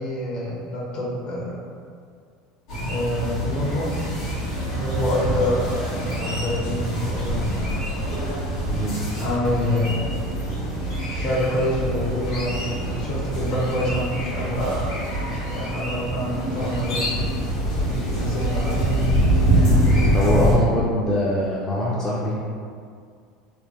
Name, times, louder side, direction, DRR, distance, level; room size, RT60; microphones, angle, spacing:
voice 1, 0.0-1.5 2.9-3.9 4.7-7.8 9.2-10.2 11.1-15.0 15.4-17.5 17.8-18.9, left 1 dB, 55° left, -5 dB, 1.2 m, -27 dB
sound 1, 2.7-20.6, right 1 dB, 80° left, 1.4 m, -24 dB
voice 2, 20.1-22.5, left 1 dB, 25° left, -6 dB, 0.5 m, -23 dB
3.5 x 2.5 x 3.0 m, 2.2 s
supercardioid pair, 100°, 2 cm